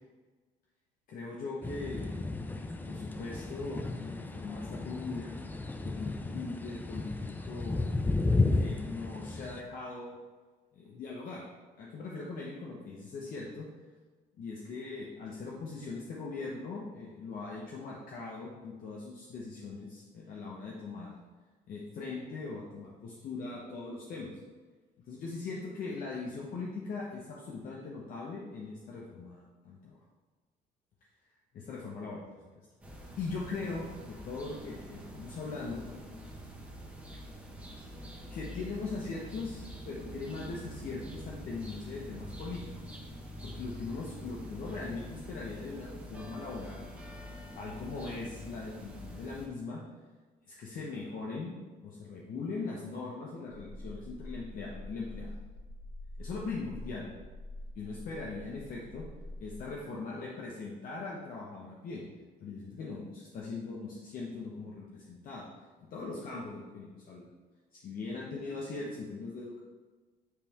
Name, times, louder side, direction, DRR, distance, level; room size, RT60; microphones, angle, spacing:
voice 1, 1.1-2.2 2.5-5.3 5.8-8.0 8.5-10.1 10.7-11.4 11.8-13.7 14.4-21.1 21.7-24.3 25.1-30.0 31.5-32.3 33.2-35.9 38.3-42.6 43.4-46.9 47.5-49.8 50.5-51.5 51.8-55.3 56.2-57.0 57.7-59.0 59.4-62.0 62.4-65.5 65.8-67.3 67.7-69.6, left 3 dB, 55° left, -4 dB, 1.1 m, -40 dB
sound 1, 1.6-9.6, left 3 dB, 10° left, 0.4 m, -33 dB
sound 2, 32.8-49.5, equal, 10° right, 1.3 m, -45 dB
sound 3, 53.5-60.0, left 1 dB, 40° right, 1.5 m, -46 dB
9.8 x 3.4 x 3.6 m, 1.3 s
cardioid pair, 110°, 17 cm